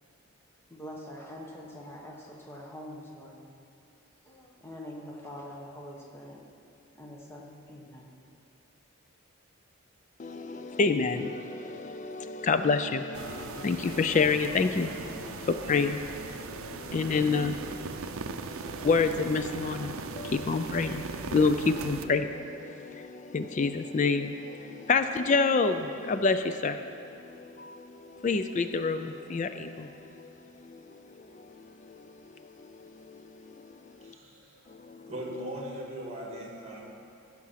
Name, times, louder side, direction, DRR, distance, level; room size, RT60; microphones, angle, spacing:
voice 1, 0.7-3.4 4.2-6.4 6.9-8.1, left 1 dB, 10° left, -2 dB, 1.2 m, -44 dB
voice 2, 10.2-33.6 34.0-34.1 34.7-35.1, left 4 dB, 35° left, 9 dB, 0.3 m, -29 dB
sound 1, 13.1-22.1, right 5 dB, 75° right, 0.5 m, -39 dB
voice 3, 34.0-34.7 35.1-36.8, right 1 dB, 30° right, -2 dB, 1.8 m, -39 dB
15.0 x 6.0 x 5.7 m, 2.6 s
head